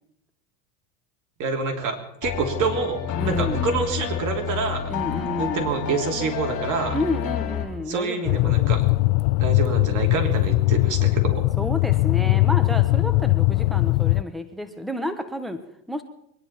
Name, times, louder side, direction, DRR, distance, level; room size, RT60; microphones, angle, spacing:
voice 1, 1.4-4.9 5.4-7.0 7.9-8.8 9.4-11.4, right 4 dB, 45° right, 3 dB, 3.2 m, -27 dB
sound 1, 2.2-7.6, left 8 dB, 40° left, 5.2 m, -29 dB
voice 2, 3.2-3.7 4.9-5.7 6.9-8.7 11.6-16.0, left 1 dB, ahead, 9 dB, 1.2 m, -30 dB
sound 2, 8.3-14.2, left 21 dB, 60° left, 0.5 m, -20 dB
23.5 x 10.5 x 5.9 m, 0.78 s
supercardioid pair, 120°, 44 cm